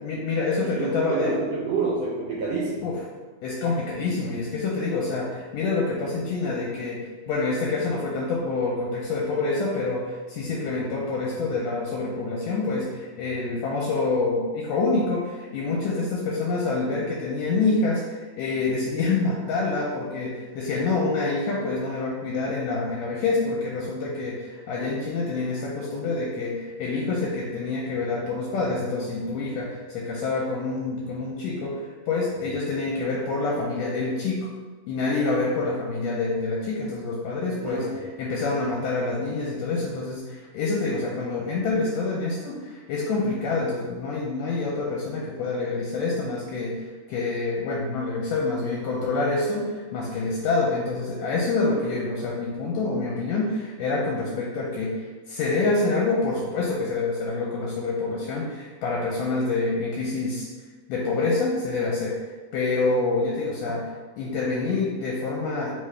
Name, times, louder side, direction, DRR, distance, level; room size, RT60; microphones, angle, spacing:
voice 1, 0.0-1.4 2.8-3.0 3.4-34.5 34.9-60.5 60.9-62.1 62.5-65.7, left 3 dB, 80° left, -3 dB, 1.7 m, -27 dB
voice 2, 0.6-2.9 13.3-13.5 32.4-32.5 37.6-38.0, right 4 dB, 80° right, -4 dB, 1.6 m, -29 dB
3.7 x 3.6 x 3.2 m, 1.4 s
omnidirectional pair, 3.3 m